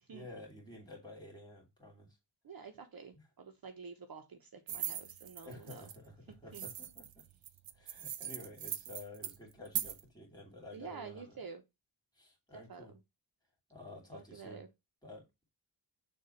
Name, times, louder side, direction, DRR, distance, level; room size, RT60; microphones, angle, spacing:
voice 1, 0.1-2.2 3.1-3.2 5.4-7.2 7.7-11.4 12.2-13.0 13.7-14.6 15.0-15.3, left 2 dB, 10° left, 2.5 m, -51 dB
voice 2, 2.4-5.9 6.5-6.7 10.7-11.6 12.5-12.9 14.1-14.7, right 5 dB, 55° right, 1.0 m, -49 dB
sound 1, 4.7-6.0 6.5-10.0, right 10 dB, 90° right, 0.7 m, -40 dB
6.6 x 2.7 x 5.6 m
wide cardioid pair, 140°, 43 cm